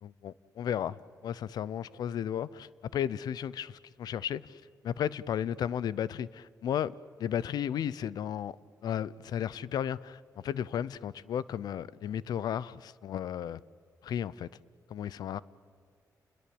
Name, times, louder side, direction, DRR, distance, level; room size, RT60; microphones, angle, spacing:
voice 1, 0.0-6.9 7.2-8.6 8.8-13.6 14.0-14.5 14.9-15.4, left 9 dB, 85° left, 0.6 m, -34 dB
29.5 x 21.0 x 8.7 m
cardioid pair, 110°, 7 cm